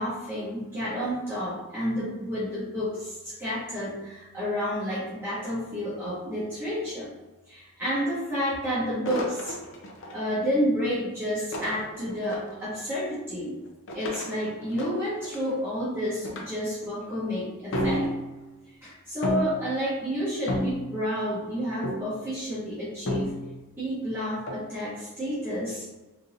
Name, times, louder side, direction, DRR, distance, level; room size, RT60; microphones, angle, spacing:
voice 1, 0.0-7.1 7.5-9.5 10.1-13.6 13.9-18.1 18.7-23.3 23.8-25.8, equal, 10° right, -12 dB, 1.1 m, -30 dB
sound 1, 9.0-10.2 11.5-12.6 13.9-15.5 16.2-16.4 16.8-17.1 17.7-18.5 19.2-19.7 20.5-21.2 21.8-22.2 23.1-23.7 24.5-24.7, equal, 60° left, 0.6 m, -31 dB
3.7 x 2.9 x 2.4 m, 1.1 s
head